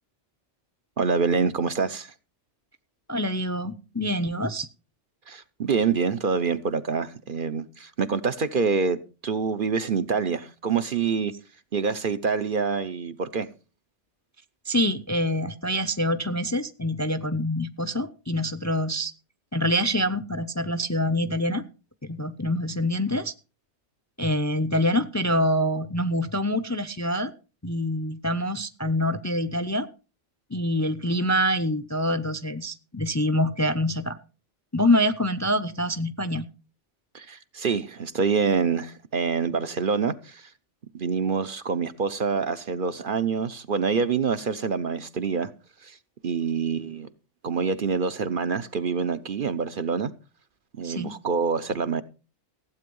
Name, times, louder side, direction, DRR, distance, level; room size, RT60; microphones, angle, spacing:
voice 1, 1.0-2.1 5.3-9.0 9.2-11.3 11.7-13.5 37.1-40.5 40.9-45.5 45.8-46.0 46.2-47.1 47.4-50.1 50.8-52.0, right 5 dB, 50° right, 1.0 m, -26 dB
voice 2, 3.1-4.7 14.7-19.1 19.5-21.7 22.1-23.3 24.2-27.3 27.6-29.9 30.5-34.2 34.7-36.5 50.8-51.1, left 1 dB, 20° left, 0.6 m, -25 dB
15.5 x 8.6 x 5.4 m
omnidirectional pair, 1.2 m